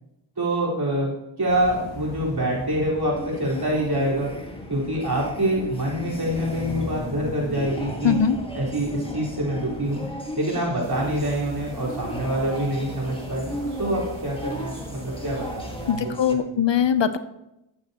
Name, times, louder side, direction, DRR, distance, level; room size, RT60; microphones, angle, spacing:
voice 1, 0.4-1.1 1.4-4.3 4.7-8.2 8.5-10.0 10.3-13.5 13.8-16.4, right 1 dB, 50° right, -5 dB, 4.5 m, -26 dB
sound 1, 1.5-10.1, left 1 dB, 85° left, 3.4 m, -38 dB
sound 2, 3.1-16.3, equal, 10° left, 1.7 m, -37 dB
voice 2, 8.0-8.4 15.9-17.2, left 8 dB, 60° left, 12 dB, 0.8 m, -21 dB
sound 3, 10.8-15.9, right 1 dB, 75° right, 3.8 m, -40 dB
13.5 x 8.9 x 3.0 m, 0.88 s
cardioid pair, 45°, 49 cm